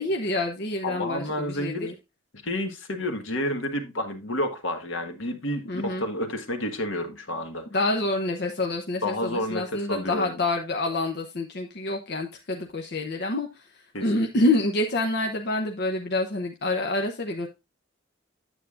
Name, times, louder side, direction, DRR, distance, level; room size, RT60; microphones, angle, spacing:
voice 1, 0.0-1.9 5.6-6.0 7.7-17.5, left 2 dB, 55° left, 0.8 m, -27 dB
voice 2, 0.8-1.9 2.4-7.7 9.0-10.4 13.9-14.2, left 1 dB, 75° left, 1.6 m, -30 dB
9.1 x 8.2 x 2.5 m
head